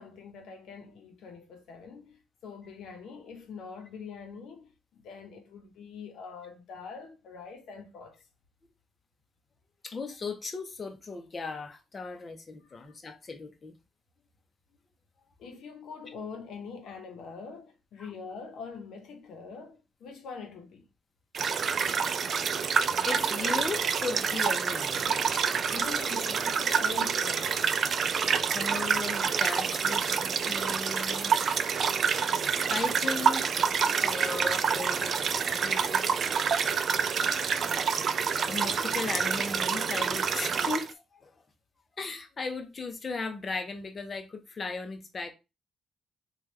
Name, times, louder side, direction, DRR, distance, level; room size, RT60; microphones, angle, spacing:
voice 1, 0.0-8.2 12.6-13.0 15.4-20.9 25.7-27.7, left 5 dB, 75° left, 0.8 m, -44 dB
voice 2, 9.8-13.7 18.0-18.1 23.1-25.8 28.5-31.4 32.7-33.7 34.0-36.6 38.5-41.3 42.0-45.3, left 4 dB, 35° left, 0.7 m, -37 dB
sound 1, 21.3-40.9, right 6 dB, 55° right, 0.4 m, -27 dB
3.3 x 2.3 x 3.1 m
cardioid pair, 90°, 0 cm